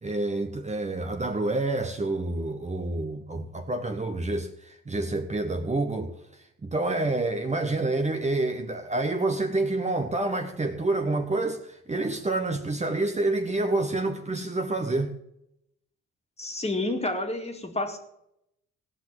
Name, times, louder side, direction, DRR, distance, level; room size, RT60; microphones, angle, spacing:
voice 1, 0.0-15.1, right 2 dB, 25° right, 1.3 m, -28 dB
voice 2, 16.4-18.0, left 2 dB, 20° left, 2.2 m, -29 dB
16.5 x 5.9 x 7.8 m
cardioid pair, 90°, 30 cm